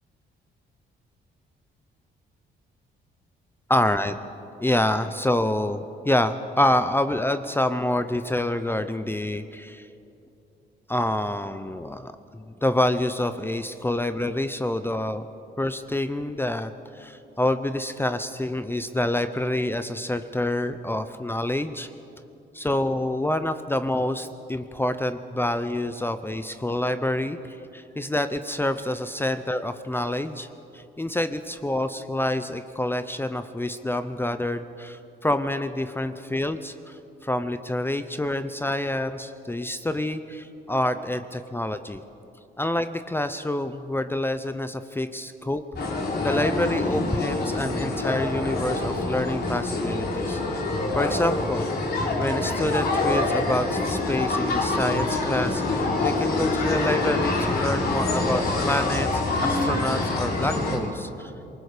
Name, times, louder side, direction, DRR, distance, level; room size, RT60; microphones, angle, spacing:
voice 1, 3.7-4.1 4.6-9.8 10.9-15.3 15.6-16.7 17.0-21.9 22.5-30.5 30.7-42.0 42.6-45.6 46.2-50.4 50.9-51.7 52.2-61.3, left 1 dB, 10° left, 10 dB, 0.7 m, -27 dB
sound 1, 45.8-60.8, left 2 dB, 55° left, 3.7 m, -26 dB
27.5 x 19.0 x 5.1 m, 2.8 s
cardioid pair, 90°, 20 cm